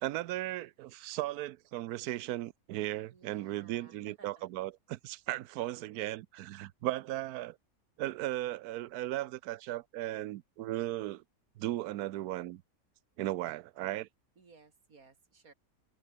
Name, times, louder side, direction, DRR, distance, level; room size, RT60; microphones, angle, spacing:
voice 1, 0.0-7.6 8.0-11.2 11.6-12.6 13.2-14.1, right 15 dB, 85° right, 1.1 m, -36 dB
voice 2, 3.1-4.5 14.4-15.5, right 4 dB, 70° right, 2.8 m, -59 dB
omnidirectional pair, 1.6 m